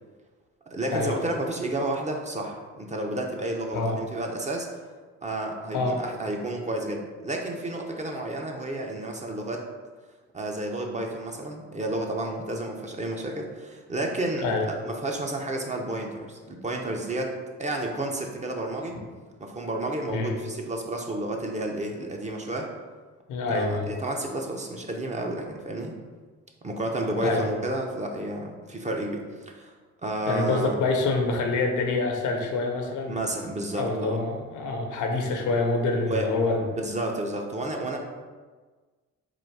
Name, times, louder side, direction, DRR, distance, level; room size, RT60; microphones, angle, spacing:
voice 1, 0.7-4.7 5.2-9.6 10.3-17.3 17.6-19.0 19.4-22.7 23.5-26.0 26.6-29.7 30.0-30.7 33.1-34.2 36.0-36.3 36.5-38.0, right 1 dB, 25° right, 1 dB, 0.7 m, -31 dB
voice 2, 23.3-23.9 27.2-27.5 30.3-33.2 33.7-36.7, left 3 dB, 80° left, 3 dB, 0.8 m, -26 dB
3.9 x 2.6 x 4.6 m, 1.4 s
cardioid pair, 90°, 30 cm